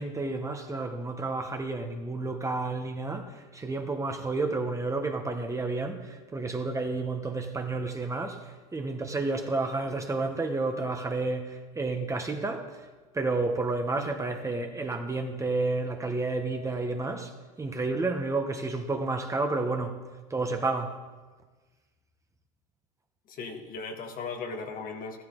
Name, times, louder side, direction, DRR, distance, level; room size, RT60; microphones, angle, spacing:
voice 1, 0.0-12.8 13.1-17.3 17.6-20.0 20.3-21.0, right 3 dB, 15° right, 1.3 m, -31 dB
voice 2, 23.3-25.2, left 4 dB, 45° left, 1.7 m, -37 dB
14.0 x 12.5 x 3.9 m
supercardioid pair, 100°, 20 cm